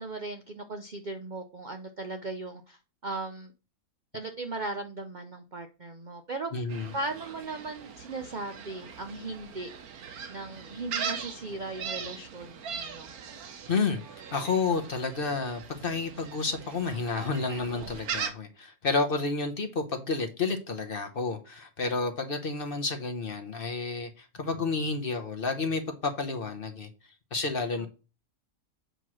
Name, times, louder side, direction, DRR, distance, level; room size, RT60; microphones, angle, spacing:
voice 1, 0.0-3.5 4.1-6.6 6.9-9.7 10.3-13.1 27.8-27.9, right 2 dB, 50° right, 0.5 m, -37 dB
voice 2, 6.5-6.9 13.7-14.0 14.3-26.9 27.3-27.9, left 4 dB, 45° left, 0.9 m, -30 dB
Gull seagull, 6.7-18.3, right 7 dB, 85° right, 1.4 m, -40 dB
7.8 x 3.0 x 6.1 m
omnidirectional pair, 1.5 m